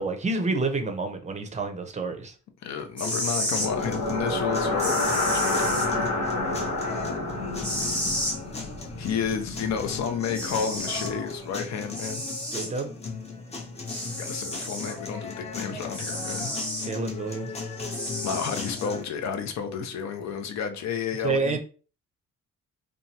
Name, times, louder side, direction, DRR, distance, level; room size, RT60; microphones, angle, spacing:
voice 1, 0.0-2.3 12.5-12.9 16.9-17.5 21.2-21.6, right 3 dB, 25° right, 0.5 m, -28 dB
voice 2, 2.6-6.1 9.0-12.2 14.1-16.5 18.2-21.6, left 7 dB, 65° left, 0.6 m, -31 dB
sound 1, 2.8-3.7 4.8-5.9 7.6-8.4 9.9-10.0 10.3-11.1 11.9-12.7 13.9-15.0 15.9-16.9 17.9-18.9, equal, 5° left, 0.9 m, -32 dB
sound 2, 3.0-19.0, left 4 dB, 20° left, 0.5 m, -38 dB
sound 3, 3.5-11.5, left 2 dB, 90° left, 1.1 m, -30 dB
2.9 x 2.3 x 2.7 m
cardioid pair, 115°, 29 cm